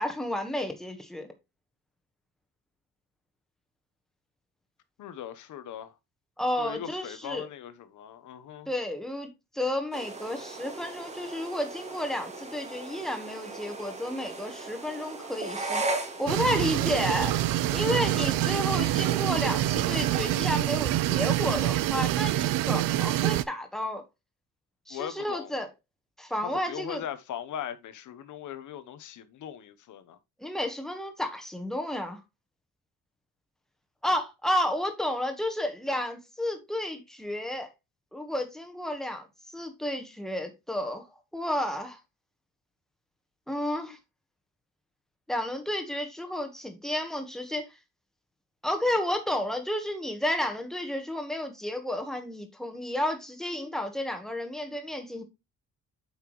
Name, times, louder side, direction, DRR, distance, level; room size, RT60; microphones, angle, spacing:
voice 1, 0.0-1.3 6.4-7.5 8.7-17.4 17.7-24.0 24.9-25.7 26.2-27.0 30.4-32.2 34.0-37.7 38.1-39.3 39.5-41.1 41.3-42.0 43.5-44.0 45.3-47.7 48.6-55.2, left 1 dB, ahead, 1.3 m, -31 dB
voice 2, 5.0-5.9 6.6-8.7 24.9-25.5 26.3-30.2, left 10 dB, 65° left, 1.0 m, -39 dB
sound 1, 9.9-20.4, right 2 dB, 20° right, 1.4 m, -38 dB
sound 2, 16.3-23.4, right 15 dB, 85° right, 0.6 m, -26 dB
8.2 x 5.7 x 3.1 m
cardioid pair, 175°, 33 cm